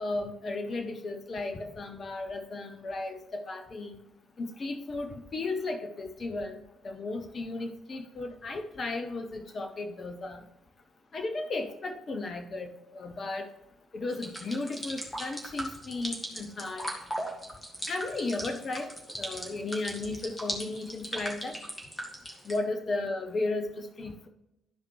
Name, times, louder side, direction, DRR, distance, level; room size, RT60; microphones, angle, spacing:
voice 1, 0.0-4.0 4.4-10.4 11.1-13.5 13.9-16.9 17.9-18.9 19.2-21.6 22.5-24.3, left 2 dB, 45° left, 5 dB, 0.8 m, -35 dB
sound 1, 14.1-22.6, equal, 10° left, 2.1 m, -38 dB
12.5 x 4.9 x 3.1 m, 0.88 s
figure-of-eight pair, 45°, 0 cm